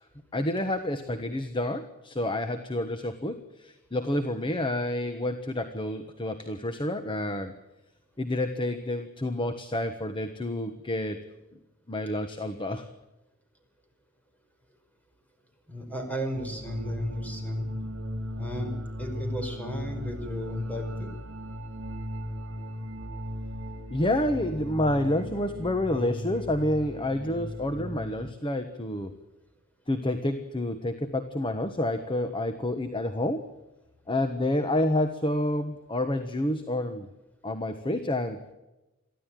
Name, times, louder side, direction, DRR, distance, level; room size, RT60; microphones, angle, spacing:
voice 1, 0.3-7.5 8.2-11.2 11.9-12.8 23.9-29.1 29.9-33.4 34.1-37.1 37.4-38.4, left 1 dB, 25° left, 8 dB, 1.2 m, -29 dB
voice 2, 15.7-17.7 18.4-21.1, equal, 5° left, 4 dB, 5.3 m, -34 dB
sound 1, 16.3-28.3, equal, 60° right, 2.9 m, -37 dB
23.5 x 15.0 x 9.2 m, 1.0 s
head